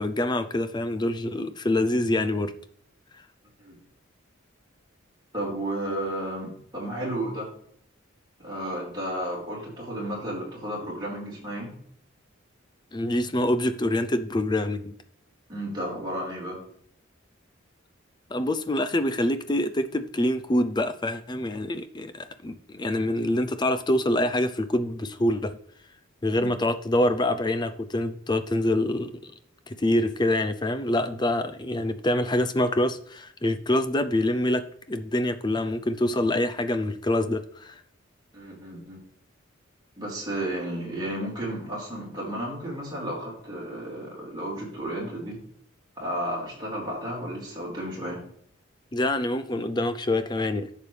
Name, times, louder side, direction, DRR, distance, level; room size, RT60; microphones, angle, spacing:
voice 1, 0.0-2.5 12.9-14.9 18.3-25.5 26.2-29.3 29.7-37.8 48.9-50.7, left 1 dB, 20° left, 11 dB, 0.5 m, -26 dB
voice 2, 5.3-7.5 8.4-11.7 15.5-16.6 38.3-39.0 40.0-45.4 46.0-48.2, right 1 dB, 20° right, -6 dB, 4.4 m, -33 dB
10.5 x 7.3 x 3.3 m, 0.64 s
head